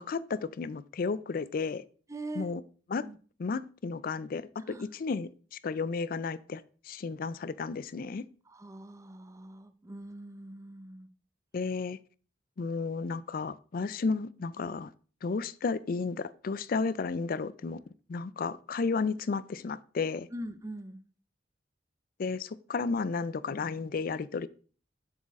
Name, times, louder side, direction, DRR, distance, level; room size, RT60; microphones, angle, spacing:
voice 1, 0.0-1.8 2.4-2.6 2.9-3.1 3.4-5.3 5.6-8.2 11.5-12.0 12.6-14.9 15.2-17.8 18.1-20.3 22.2-24.5, left 4 dB, 50° left, 0.4 m, -33 dB
voice 2, 2.1-2.5 3.0-3.2 4.7-4.8 8.5-11.1 20.3-21.0, right 1 dB, 15° right, 0.6 m, -42 dB
7.1 x 6.4 x 3.6 m
head